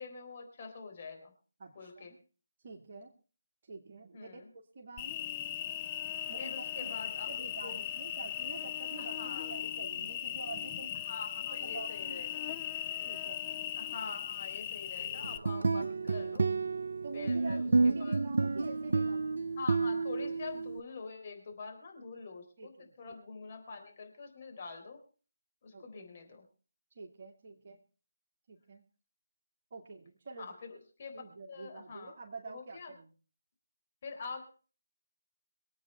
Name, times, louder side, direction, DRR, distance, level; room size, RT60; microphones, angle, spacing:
voice 1, 0.0-1.3 1.8-2.1 4.1-4.4 6.4-7.3 7.6-7.7 9.0-9.5 11.0-12.4 13.8-16.5 17.1-17.7 18.0-18.2 19.6-22.7 23.0-25.0 25.6-26.4 30.4-31.2 31.5-32.1 32.5-32.9 34.0-34.5, left 4 dB, 35° left, 3 dB, 3.7 m, -45 dB
voice 2, 1.6-2.2 2.6-3.1 3.7-5.1 6.3-6.9 7.2-11.1 11.5-12.5 13.0-13.4 17.0-19.3 22.6-23.2 25.7-26.1 27.0-27.8 28.5-28.8 29.7-30.6 31.1-33.1, right 4 dB, 40° right, 0 dB, 2.2 m, -47 dB
Cricket, 5.0-15.4, left 11 dB, 20° left, 0.6 m, -38 dB
sound 1, 15.2-20.8, right 3 dB, 60° right, 0.6 m, -30 dB
24.0 x 8.7 x 4.4 m, 0.38 s
figure-of-eight pair, 155°, 0 cm